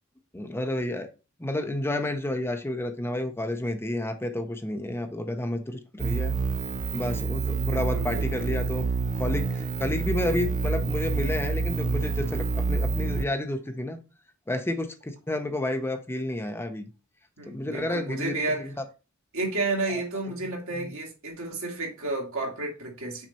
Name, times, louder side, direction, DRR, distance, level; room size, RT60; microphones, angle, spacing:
voice 1, 0.3-1.1 1.4-6.3 6.9-8.9 9.2-14.0 14.5-16.9 17.5-18.7, left 1 dB, 10° left, 0.7 m, -30 dB
sound 1, 6.0-13.3, right 4 dB, 40° right, 0.4 m, -28 dB
voice 2, 7.5-8.6 17.4-18.7 19.3-23.3, right 2 dB, 70° right, 2.1 m, -32 dB
6.2 x 4.0 x 4.2 m
head